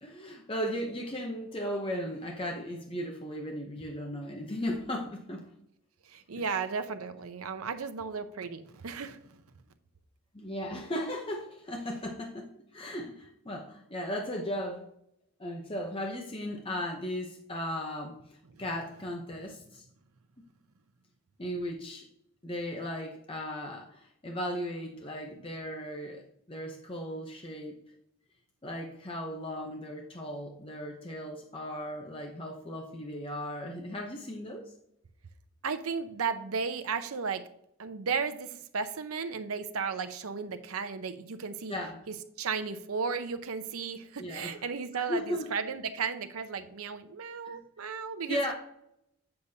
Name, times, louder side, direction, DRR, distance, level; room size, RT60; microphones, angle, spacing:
voice 1, 0.0-5.4 6.3-6.4 10.3-14.8 15.4-18.2 18.6-19.8 21.4-22.1 22.4-27.7 28.6-34.6 41.7-42.0 44.2-44.6 44.9-45.5 47.4-47.6 48.3-48.5, equal, 25° left, 1 dB, 0.8 m, -36 dB
voice 2, 6.1-9.4 18.5-18.6 35.6-37.4 37.8-41.8 42.1-48.5, right 5 dB, 85° right, 10 dB, 0.7 m, -35 dB
8.0 x 6.7 x 2.8 m, 0.75 s
head